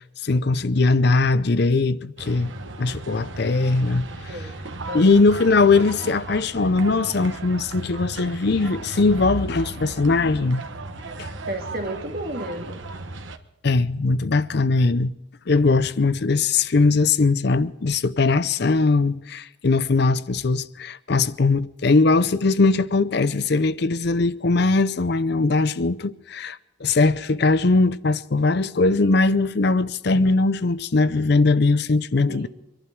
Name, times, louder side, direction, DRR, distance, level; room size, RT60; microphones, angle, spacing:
voice 1, 0.2-2.5 2.8-4.5 4.9-10.6 11.2-11.3 13.6-15.1 15.5-32.5, left 3 dB, 55° left, 0.6 m, -20 dB
sound 1, 2.2-13.4, right 2 dB, 80° right, 1.3 m, -36 dB
voice 2, 11.5-12.8 32.3-32.5, right 1 dB, 50° right, 2.2 m, -32 dB
25.0 x 11.5 x 4.6 m
head